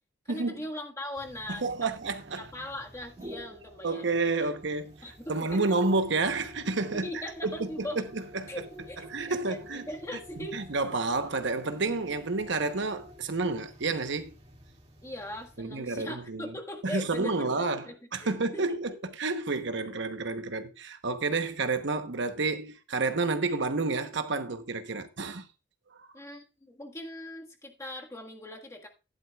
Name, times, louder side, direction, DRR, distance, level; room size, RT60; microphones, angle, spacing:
voice 1, 0.3-1.9 2.4-4.2 4.5-4.6 5.0-5.8 6.9-8.1 8.5-10.7 15.0-18.8 26.1-28.9, left 1 dB, 15° left, 1.6 m, -40 dB
sound 1, 1.2-15.6, equal, 35° right, 2.3 m, -51 dB
voice 2, 1.5-2.5 3.8-7.9 8.1-8.5 9.1-9.9 10.5-14.3 15.6-16.5 16.8-18.9 19.2-25.4, right 3 dB, 70° right, 1.0 m, -30 dB
12.5 x 11.0 x 2.4 m
head